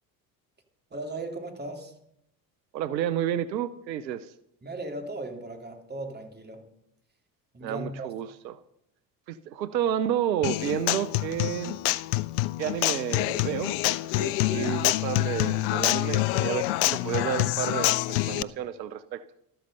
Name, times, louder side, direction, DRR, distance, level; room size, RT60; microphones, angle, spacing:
voice 1, 0.9-1.9 4.6-6.7 7.5-8.1, right 2 dB, 20° right, 4 dB, 3.1 m, -37 dB
voice 2, 2.7-4.3 7.6-8.6 9.3-11.8 12.6-19.2, right 10 dB, 90° right, 14 dB, 0.7 m, -31 dB
Human voice / Acoustic guitar, 10.4-18.4, left 19 dB, 65° left, 0.7 m, -26 dB
13.0 x 13.0 x 5.5 m, 0.76 s
hypercardioid pair, 65°, 50 cm